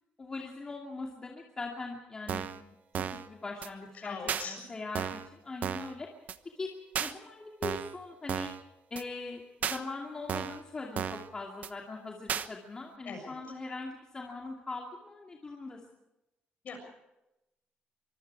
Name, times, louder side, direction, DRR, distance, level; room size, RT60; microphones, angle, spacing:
voice 1, 0.2-2.5 3.0-6.1 6.6-6.7 7.0-8.5 8.9-15.8, left 3 dB, 20° left, 0 dB, 2.5 m, -41 dB
sound 1, 2.3-2.6 2.9-3.3 3.6-3.7 4.3-4.4 5.0-5.3 5.6-5.9 6.3-6.4 7.0-7.1 7.6-8.0 8.3-8.6 9.0-9.1 9.6-9.8 10.3-10.6 11.0-11.3 11.6-11.7 12.3-12.5, right 8 dB, 50° right, 1.0 m, -34 dB
voice 2, 4.0-4.6 13.0-13.3 16.6-16.8, left 5 dB, 45° left, 4 dB, 7.2 m, -41 dB
24.5 x 24.0 x 4.8 m, 0.92 s
cardioid pair, 155°, 4 cm